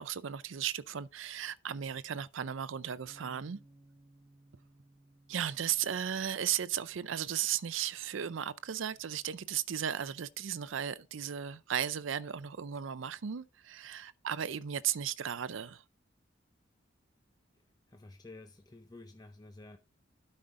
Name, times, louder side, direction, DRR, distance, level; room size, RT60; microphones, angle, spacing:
voice 1, 0.0-3.6 5.3-15.8, right 9 dB, 70° right, 0.5 m, -35 dB
Bass guitar, 3.1-9.3, right 2 dB, 20° right, 1.0 m, -63 dB
voice 2, 17.9-19.8, left 2 dB, 20° left, 0.5 m, -51 dB
12.5 x 5.4 x 3.7 m
head